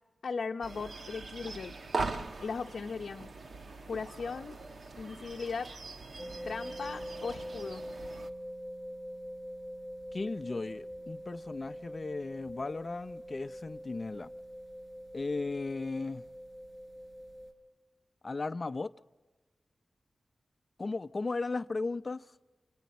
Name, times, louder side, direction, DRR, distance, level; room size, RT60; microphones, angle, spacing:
voice 1, 0.2-1.8 2.4-3.3 3.9-4.6 4.9-5.7 6.4-7.8, left 5 dB, 80° left, 0.7 m, -37 dB
sound 1, 0.6-8.3, right 3 dB, 70° right, 1.2 m, -41 dB
sound 2, 6.2-17.5, equal, 25° right, 5.7 m, -44 dB
voice 2, 10.1-14.3 15.1-16.2 18.2-18.9 20.8-22.2, left 3 dB, 45° left, 0.6 m, -36 dB
29.0 x 26.0 x 4.3 m
wide cardioid pair, 70°, 0 cm